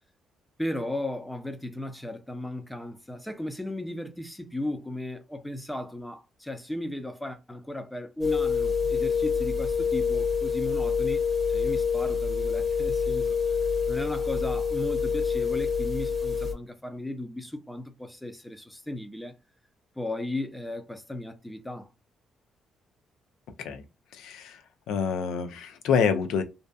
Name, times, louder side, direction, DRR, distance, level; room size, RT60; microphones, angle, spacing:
voice 1, 0.6-11.2 11.5-13.4 13.9-19.3 20.0-21.9, left 1 dB, 5° left, 0.5 m, -36 dB
sound 1, 8.2-16.5, left 6 dB, 25° right, 0.8 m, -27 dB
voice 2, 24.1-24.6 24.9-26.4, left 6 dB, 85° left, 0.4 m, -27 dB
2.6 x 2.3 x 2.2 m
cardioid pair, 90°, 0 cm